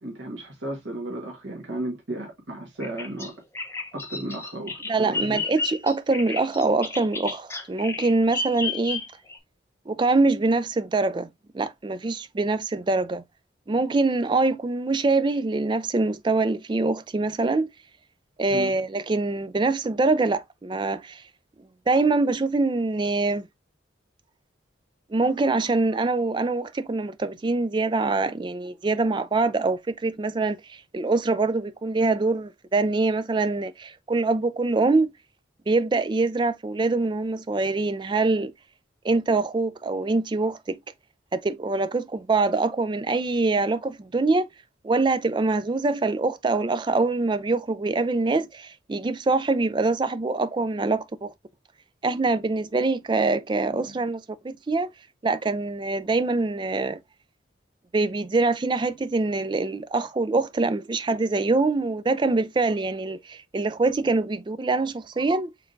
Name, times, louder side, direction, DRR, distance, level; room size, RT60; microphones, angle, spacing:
voice 1, 0.0-3.3 3.9-5.4 18.5-18.7 53.7-53.9, right 1 dB, 75° right, 1.4 m, -34 dB
Bird vocalization bird call bird song, 2.8-9.4, left 3 dB, 15° left, 0.7 m, -32 dB
voice 2, 4.9-9.0 9.9-11.3 11.5-13.2 13.7-17.7 18.4-21.2 21.9-23.5 25.1-35.1 35.7-38.5 39.0-40.8 41.3-44.5 44.8-51.3 52.0-54.9 55.2-57.0 57.9-65.5, right 3 dB, 25° right, 0.3 m, -24 dB
5.7 x 3.4 x 2.5 m
head